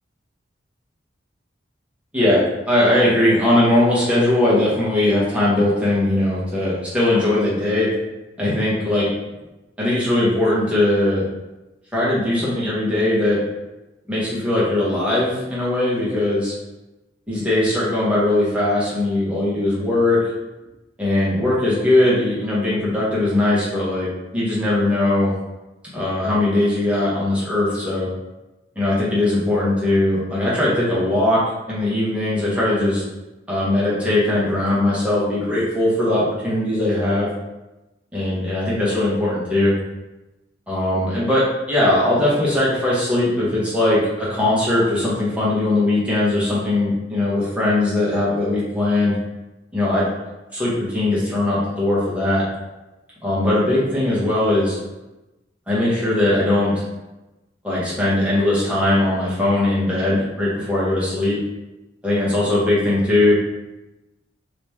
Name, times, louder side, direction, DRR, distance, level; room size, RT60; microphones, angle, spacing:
voice 1, 2.1-7.9 8.4-9.1 9.8-11.2 11.9-13.4 14.1-16.5 17.3-20.3 21.0-25.3 25.9-28.1 28.8-31.4 31.7-33.0 33.5-37.3 38.1-39.8 40.7-49.2 49.7-50.1 50.5-52.4 53.2-54.8 55.7-56.8 57.6-61.4 62.0-63.3, left 1 dB, 5° right, -9 dB, 1.0 m, -20 dB
3.0 x 2.9 x 3.4 m, 1.0 s
head